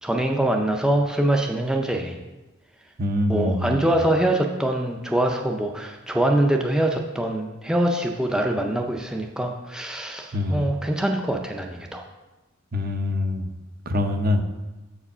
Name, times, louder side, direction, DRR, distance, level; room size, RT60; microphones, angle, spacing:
voice 1, 0.0-2.2 3.3-12.0, right 1 dB, 5° right, 2 dB, 0.4 m, -24 dB
voice 2, 3.0-3.8 10.3-10.7 12.7-13.5 13.9-14.4, left 1 dB, 45° right, 6 dB, 0.7 m, -24 dB
7.2 x 4.8 x 5.5 m, 1.1 s
head